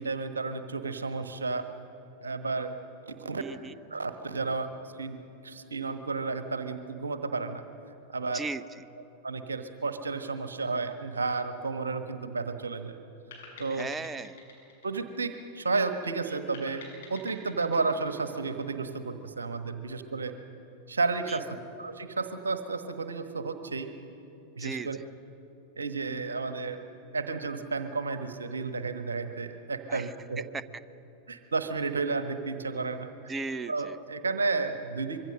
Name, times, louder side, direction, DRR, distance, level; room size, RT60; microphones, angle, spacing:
voice 1, 0.0-1.6 2.2-2.7 3.2-3.4 3.9-4.7 5.0-7.6 8.1-8.4 9.2-13.0 13.6-13.9 14.8-16.8 17.1-20.3 20.9-21.5 21.8-23.9 24.6-25.0 25.8-26.8 27.1-30.4 31.3-33.3 33.7-35.2, right 4 dB, 75° right, 9 dB, 1.3 m, -32 dB
voice 2, 3.4-3.7 8.3-8.6 13.7-14.4 21.3-21.4 24.6-25.0 29.9-30.1 30.5-30.6 33.3-34.0, right 3 dB, 15° right, 14 dB, 0.6 m, -36 dB
sound 1, 13.3-15.8 16.5-19.1, left 3 dB, 55° left, 6.8 m, -49 dB
24.5 x 23.0 x 6.5 m, 2.9 s
figure-of-eight pair, 90°, 0 cm